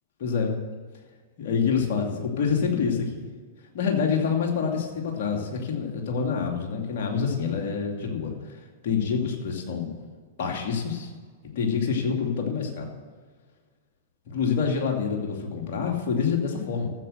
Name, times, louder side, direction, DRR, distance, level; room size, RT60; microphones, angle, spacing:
voice 1, 0.2-0.6 1.4-3.3 3.7-8.3 8.8-10.0 10.4-11.1 11.6-12.9 14.3-16.9, left 6 dB, 55° left, 1 dB, 2.7 m, -26 dB
13.5 x 7.9 x 6.7 m, 1.5 s
figure-of-eight pair, 100°, 0 cm